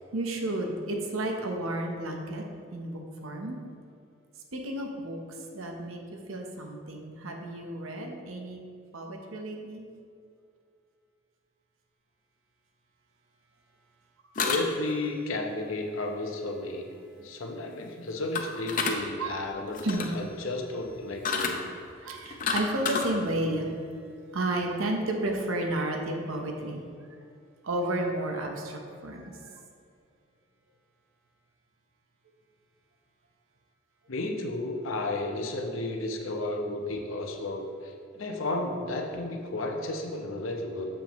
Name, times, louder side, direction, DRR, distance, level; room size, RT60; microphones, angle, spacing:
voice 1, 0.1-2.4 2.7-3.6 4.5-5.2 5.5-6.0 6.3-8.6 8.9-9.8 19.2-19.4 19.8-20.1 22.0-23.7 24.3-26.8 27.6-29.4, right 1 dB, 85° right, 2 dB, 0.9 m, -32 dB
sound 1, 14.3-15.0 18.3-19.0 19.7-20.2 21.2-21.5 22.2-23.1, left 5 dB, 40° left, 0.6 m, -29 dB
voice 2, 14.4-16.8 17.2-21.6 34.1-40.9, left 2 dB, 80° left, 2 dB, 0.9 m, -33 dB
7.4 x 7.1 x 3.1 m, 2.4 s
head